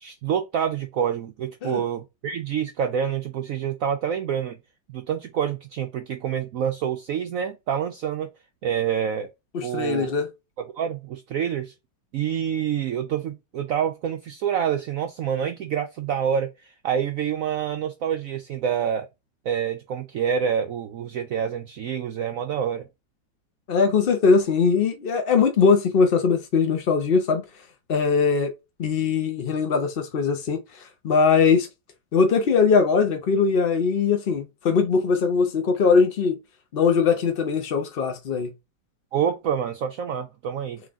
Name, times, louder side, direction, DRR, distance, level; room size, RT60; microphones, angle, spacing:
voice 1, 0.0-4.6 4.9-8.3 8.6-9.3 9.6-10.1 10.6-11.7 12.1-19.1 19.4-22.8 39.1-40.8, right 8 dB, 75° right, 0.7 m, -27 dB
voice 2, 9.5-10.3 23.7-27.4 27.9-28.5 28.8-31.7 32.1-36.4 36.7-38.5, left 5 dB, 65° left, 0.5 m, -21 dB
3.9 x 3.2 x 3.5 m
omnidirectional pair, 1.9 m